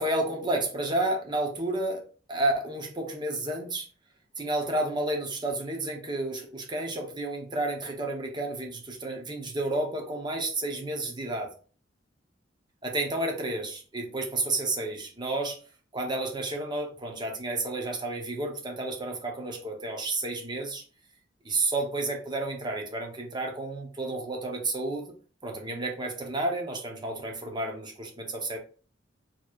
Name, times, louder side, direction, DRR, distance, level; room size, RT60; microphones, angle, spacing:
voice 1, 0.0-3.9 4.4-11.5 12.8-15.6 15.9-20.8 21.4-25.1 25.4-28.6, right 2 dB, 25° right, 1 dB, 0.9 m, -31 dB
4.6 x 3.0 x 2.5 m, 0.38 s
head